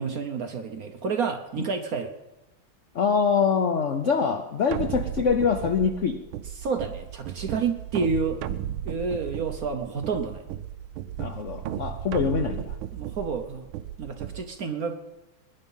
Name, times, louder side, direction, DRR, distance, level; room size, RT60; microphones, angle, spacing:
voice 1, 0.0-2.1 6.6-8.4 8.8-10.4 12.9-13.7 14.0-15.0, right 5 dB, 60° right, 6 dB, 1.0 m, -29 dB
voice 2, 2.9-6.2 11.2-12.7, left 6 dB, 75° left, 7 dB, 0.6 m, -24 dB
sound 1, 4.7-14.4, right 11 dB, 80° right, 1.5 m, -35 dB
20.5 x 10.5 x 5.5 m, 1.0 s
omnidirectional pair, 2.4 m